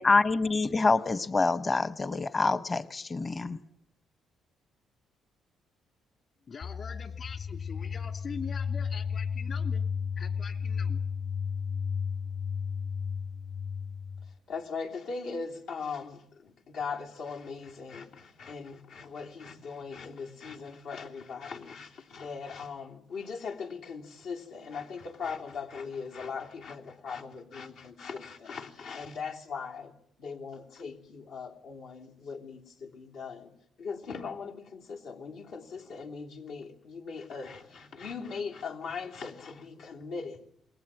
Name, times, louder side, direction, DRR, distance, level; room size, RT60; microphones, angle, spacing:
voice 1, 0.0-3.6, left 3 dB, 30° left, 14 dB, 1.0 m, -26 dB
voice 2, 6.5-9.8 10.2-11.0, left 5 dB, 50° left, 7 dB, 2.8 m, -43 dB
sound 1, 6.6-14.4, left 6 dB, 65° left, 4.7 m, -33 dB
voice 3, 14.5-29.9 30.2-33.5 33.8-40.5, left 5 dB, 85° left, -1 dB, 3.2 m, -40 dB
28.5 x 21.5 x 9.0 m, 0.71 s
cardioid pair, 90°, 0 cm